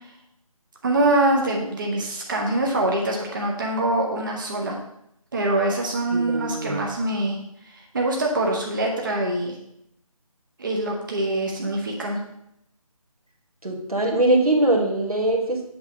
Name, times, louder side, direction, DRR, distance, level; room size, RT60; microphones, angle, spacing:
voice 1, 0.8-4.8 5.3-7.4 7.7-9.5 10.6-12.2, right 1 dB, 35° right, 0 dB, 0.8 m, -24 dB
voice 2, 6.1-6.9 13.6-15.6, right 1 dB, 85° right, 1 dB, 1.6 m, -22 dB
8.1 x 3.4 x 5.2 m, 0.78 s
figure-of-eight pair, 160°, 19 cm